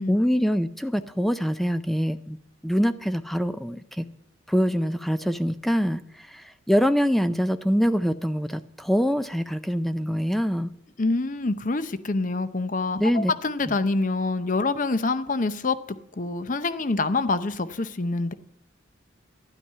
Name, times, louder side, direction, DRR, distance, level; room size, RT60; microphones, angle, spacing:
voice 1, 0.1-2.4 2.6-4.0 4.5-10.7 13.0-13.3 13.7-13.8, equal, ahead, 11 dB, 0.4 m, -24 dB
voice 2, 11.0-15.8 16.2-18.3, left 3 dB, 40° left, 13 dB, 0.7 m, -26 dB
12.5 x 11.0 x 5.6 m, 0.80 s
head